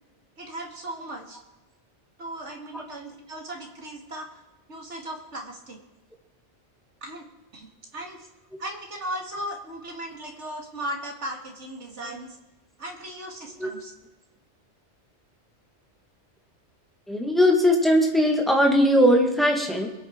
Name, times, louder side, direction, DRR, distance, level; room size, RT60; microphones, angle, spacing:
voice 1, 0.4-1.4 2.2-4.4 4.7-5.8 7.0-7.3 7.5-8.3 8.6-12.4 12.8-13.9, right 1 dB, 70° right, 2 dB, 2.5 m, -37 dB
voice 2, 17.1-19.9, equal, ahead, 2 dB, 2.0 m, -20 dB
22.0 x 8.5 x 4.6 m, 1.1 s
omnidirectional pair, 1.2 m